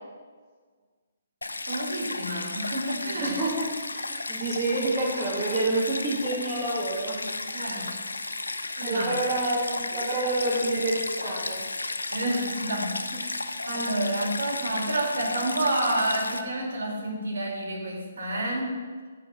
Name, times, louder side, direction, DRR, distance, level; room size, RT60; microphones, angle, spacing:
Stream, 1.4-16.4, left 2 dB, 90° left, 0.6 m, -34 dB
voice 1, 1.7-3.4 7.5-8.0 8.8-9.2 12.1-13.4 13.7-18.8, right 1 dB, 65° right, -2 dB, 2.7 m, -29 dB
voice 2, 3.2-7.5 8.8-11.6, right 2 dB, 20° right, -6 dB, 2.0 m, -28 dB
9.5 x 3.9 x 6.4 m, 1.5 s
figure-of-eight pair, 140°, 0 cm